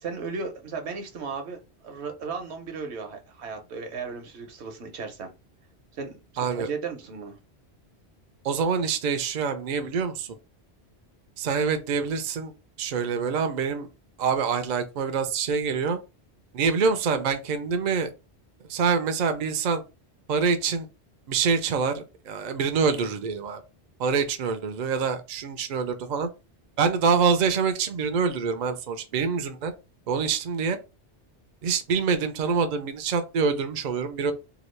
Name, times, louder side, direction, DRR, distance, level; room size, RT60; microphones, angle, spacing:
voice 1, 0.0-5.3 5.9-7.3, right 5 dB, 80° right, 1.0 m, -35 dB
voice 2, 6.4-6.7 8.4-10.3 11.4-12.5 12.8-13.9 14.2-16.0 16.5-18.1 18.7-19.8 20.3-20.9 21.3-23.6 24.0-26.3 26.8-29.7 30.1-30.8 31.6-34.3, right 5 dB, 55° right, 0.5 m, -25 dB
2.9 x 2.3 x 3.1 m
omnidirectional pair, 1.1 m